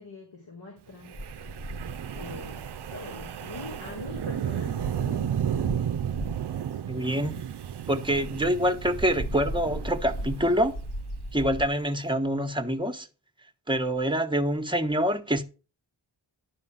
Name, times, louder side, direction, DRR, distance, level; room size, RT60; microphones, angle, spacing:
voice 1, 0.0-1.8 2.1-5.6, left 3 dB, 90° left, 3.2 m, -43 dB
Wind, 1.0-11.3, right 9 dB, 60° right, 0.6 m, -33 dB
sound 1, 1.1-6.6 7.1-11.7, equal, 55° left, 1.4 m, -38 dB
voice 2, 6.9-7.4 7.9-10.8 11.3-13.1 13.7-15.4, equal, 10° right, 1.1 m, -26 dB
11.0 x 3.9 x 7.2 m
wide cardioid pair, 75°, 47 cm